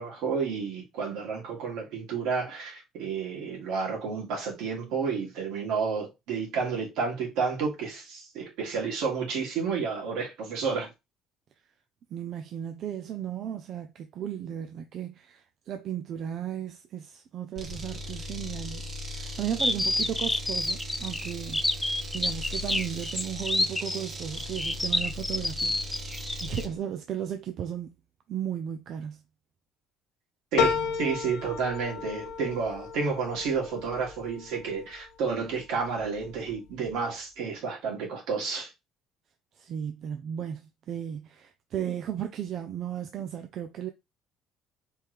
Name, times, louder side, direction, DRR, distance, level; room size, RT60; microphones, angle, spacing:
voice 1, 0.0-10.9 30.5-38.7, right 5 dB, 80° right, 2.5 m, -31 dB
voice 2, 12.1-25.8 26.4-27.9 28.3-29.2 39.6-43.9, right 9 dB, 50° right, 0.5 m, -35 dB
sound 1, 17.6-26.8, equal, 35° right, 1.2 m, -38 dB
sound 2, 19.6-26.6, left 2 dB, 10° left, 0.3 m, -28 dB
sound 3, 30.6-35.3 35.8-36.5 36.9-37.0, left 6 dB, 80° left, 0.8 m, -32 dB
4.5 x 3.6 x 3.3 m
cardioid pair, 135°, 0 cm